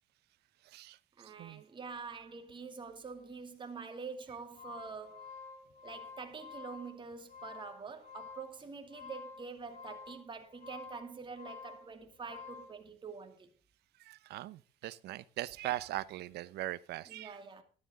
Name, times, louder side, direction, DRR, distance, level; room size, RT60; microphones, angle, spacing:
voice 1, 1.2-5.3 5.8-13.5 17.0-17.6, right 5 dB, 30° right, 2.5 m, -46 dB
sound 1, 4.3-12.8, left 5 dB, 45° left, 7.3 m, -50 dB
voice 2, 14.1-17.4, right 15 dB, 75° right, 0.8 m, -40 dB
13.5 x 12.0 x 3.7 m
cardioid pair, 110°, 17 cm